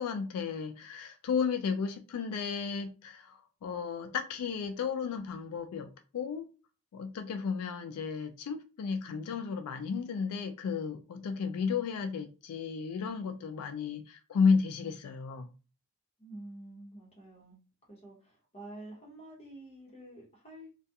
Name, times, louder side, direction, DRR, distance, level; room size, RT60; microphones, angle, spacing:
voice 1, 0.0-6.5 6.9-15.5, left 5 dB, 90° left, 0.3 m, -33 dB
voice 2, 16.2-17.6 17.9-20.7, right 1 dB, 25° left, 0.9 m, -48 dB
2.3 x 2.3 x 2.7 m
head